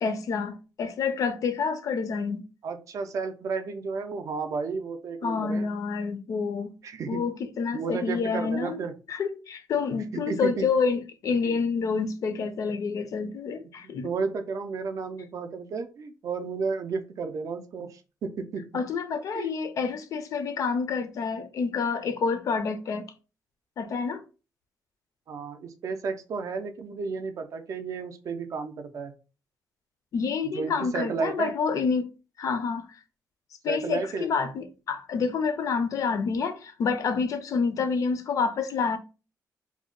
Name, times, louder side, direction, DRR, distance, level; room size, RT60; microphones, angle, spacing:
voice 1, 0.0-2.4 5.2-6.7 7.1-8.8 9.1-14.1 18.7-23.1 23.8-24.2 30.1-32.1 32.4-33.0 33.6-39.0, left 5 dB, 55° left, 0.4 m, -28 dB
voice 2, 2.6-5.7 6.8-7.2 7.7-8.9 10.1-10.7 11.5-11.6 13.8-18.6 19.3-19.5 25.3-29.1 30.5-31.5 33.7-34.3, right 5 dB, 50° right, 0.4 m, -32 dB
2.6 x 2.1 x 3.7 m
wide cardioid pair, 180°, 7 cm